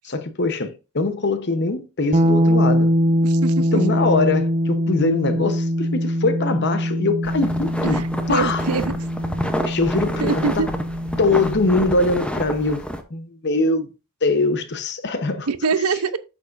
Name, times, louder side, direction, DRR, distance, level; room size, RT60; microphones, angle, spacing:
voice 1, 0.0-2.9 3.7-8.6 9.6-10.7 11.2-13.9 14.2-15.5, left 3 dB, 50° left, 0.9 m, -22 dB
sound 1, 2.1-11.9, equal, 30° right, 0.5 m, -22 dB
voice 2, 3.2-3.8 7.8-8.0 8.3-8.9 10.2-10.7 15.5-16.2, right 4 dB, 90° right, 0.7 m, -23 dB
sound 2, 7.2-13.0, equal, 5° left, 0.7 m, -29 dB
8.4 x 7.0 x 2.5 m
head